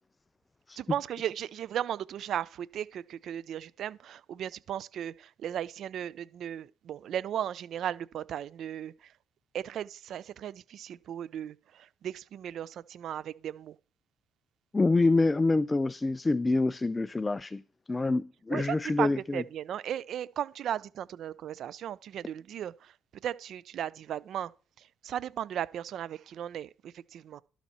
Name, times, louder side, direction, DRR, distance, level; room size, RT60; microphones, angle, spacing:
voice 1, 0.8-9.1 9.5-13.8 18.5-24.5 24.8-27.4, right 10 dB, 60° right, 0.5 m, -36 dB
voice 2, 14.7-17.6 17.9-19.4, left 3 dB, 20° left, 0.4 m, -26 dB
12.0 x 7.1 x 4.3 m
cardioid pair, 95°, 0 cm